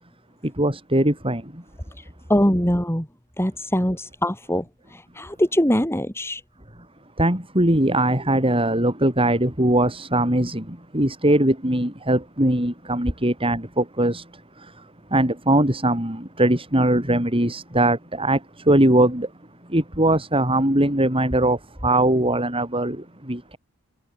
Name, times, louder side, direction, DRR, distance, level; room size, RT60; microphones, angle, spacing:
voice 1, 0.4-1.6 7.2-14.3 14.6-14.8 15.1-19.3 19.7-23.6, right 1 dB, 25° right, 7.9 m, -21 dB
voice 2, 2.0-3.1 3.4-6.4, equal, 10° left, 6.3 m, -23 dB
head